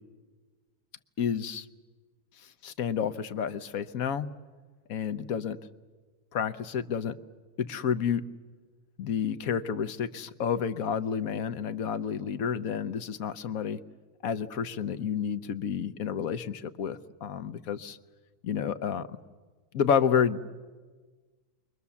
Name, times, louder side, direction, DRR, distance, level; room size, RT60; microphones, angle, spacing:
voice 1, 1.2-1.7 2.6-4.3 4.9-5.6 6.3-7.1 7.6-8.2 9.0-13.8 14.2-18.0 18.4-19.1 19.7-20.6, left 7 dB, 65° left, 11 dB, 1.3 m, -30 dB
29.0 x 24.0 x 7.1 m, 1.4 s
omnidirectional pair, 1.7 m